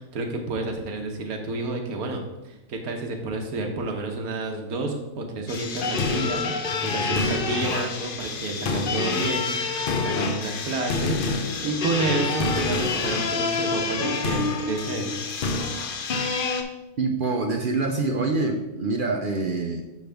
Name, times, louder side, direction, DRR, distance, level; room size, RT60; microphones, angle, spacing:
voice 1, 0.0-11.2 11.4-15.2, right 3 dB, 85° right, 3 dB, 1.4 m, -30 dB
sound 1, 5.5-16.6, left 4 dB, 55° left, 0.6 m, -27 dB
voice 2, 17.0-19.8, right 3 dB, 60° right, 3 dB, 0.5 m, -25 dB
6.5 x 6.3 x 3.4 m, 1.0 s
omnidirectional pair, 1.5 m